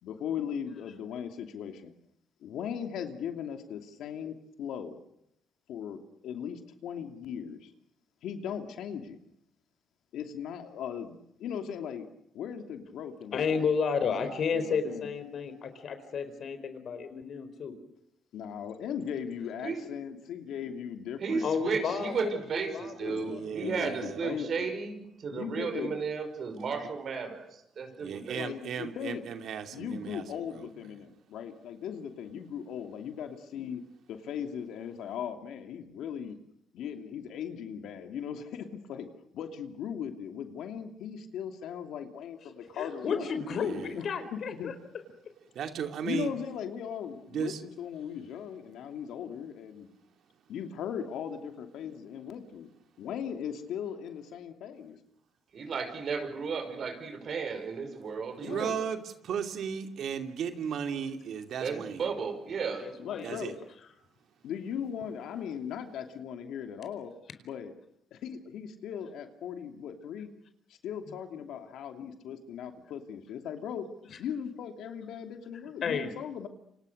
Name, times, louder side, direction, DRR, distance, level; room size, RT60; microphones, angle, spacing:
voice 1, 0.0-1.9 2.4-5.0 5.7-7.7 8.2-9.2 10.1-12.1 12.3-13.7 14.1-14.2 14.5-15.1 18.3-21.6 23.0-24.7 25.3-26.0 28.3-29.2 29.7-33.8 34.1-36.4 36.7-39.1 39.3-43.3 43.9-44.1 44.3-44.7 46.0-49.9 50.5-52.7 53.0-55.0 58.4-58.8 63.0-63.7 64.4-67.1 67.4-67.7 68.1-70.3 70.8-73.8 74.2-76.5, left 8 dB, 80° left, 6 dB, 2.8 m, -38 dB
voice 2, 13.3-17.7 21.4-23.4 42.7-44.7 62.8-63.4 75.8-76.1, left 6 dB, 60° left, 10 dB, 4.4 m, -32 dB
voice 3, 19.6-19.9 21.2-28.4 55.5-58.7 61.6-62.9, right 5 dB, 55° right, 7 dB, 5.9 m, -34 dB
voice 4, 23.2-24.2 28.0-30.7 43.5-44.0 45.5-46.3 47.3-47.6 58.3-62.0 63.2-63.6, right 7 dB, 70° right, 6 dB, 2.7 m, -36 dB
28.0 x 26.5 x 6.7 m, 0.77 s
cardioid pair, 90°, 0 cm